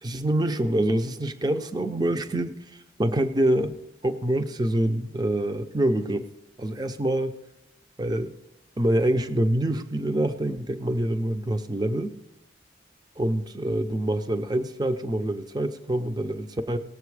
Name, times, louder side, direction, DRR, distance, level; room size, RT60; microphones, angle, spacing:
voice 1, 0.0-3.8 4.0-6.3 6.6-7.3 8.0-8.3 8.8-12.2 13.2-16.8, right 1 dB, 20° right, 8 dB, 0.5 m, -26 dB
18.5 x 7.7 x 4.8 m, 0.93 s
head